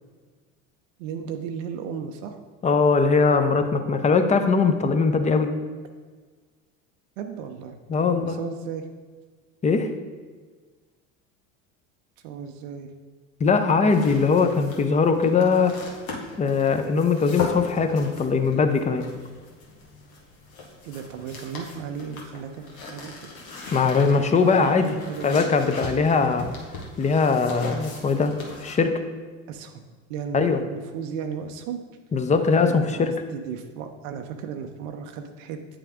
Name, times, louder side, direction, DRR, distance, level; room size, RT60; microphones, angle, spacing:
voice 1, 1.0-2.4 7.2-8.8 12.2-12.9 20.8-23.3 24.5-24.6 24.9-25.5 29.5-29.8 30.1-31.8 32.6-35.6, right 7 dB, 70° right, 5 dB, 0.6 m, -35 dB
voice 2, 2.6-5.5 7.9-8.4 9.6-9.9 13.4-15.8 16.4-19.1 23.7-25.0 25.2-26.4 27.0-28.3 28.6-29.0 30.3-30.6 32.1-33.1, left 4 dB, 20° left, 8 dB, 0.5 m, -21 dB
sound 1, 13.9-28.7, left 4 dB, 85° left, 1.3 m, -38 dB
8.3 x 3.4 x 3.5 m, 1.4 s
hypercardioid pair, 80°, 40 cm